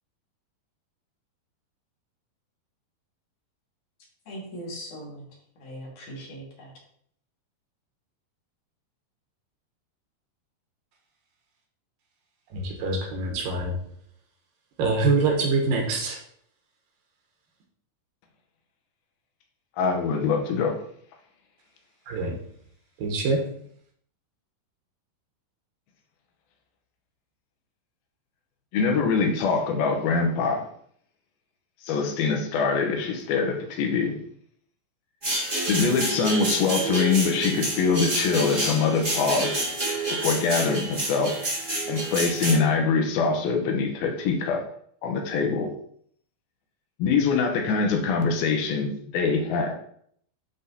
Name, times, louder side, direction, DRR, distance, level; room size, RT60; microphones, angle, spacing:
voice 1, 4.3-5.3 5.6-6.7, equal, 60° left, -4 dB, 3.3 m, -39 dB
voice 2, 12.5-13.8 14.8-16.2 22.1-22.4 23.0-23.5, right 3 dB, 70° right, 1 dB, 2.7 m, -25 dB
voice 3, 19.8-20.8 28.7-30.7 31.8-34.2 35.7-39.7 40.1-41.4 41.9-44.6 45.0-45.7 47.0-49.7, left 5 dB, 80° left, 3 dB, 2.8 m, -24 dB
sound 1, 35.2-42.5, right 2 dB, 30° right, 0.7 m, -28 dB
11.5 x 4.0 x 2.8 m, 0.64 s
omnidirectional pair, 4.3 m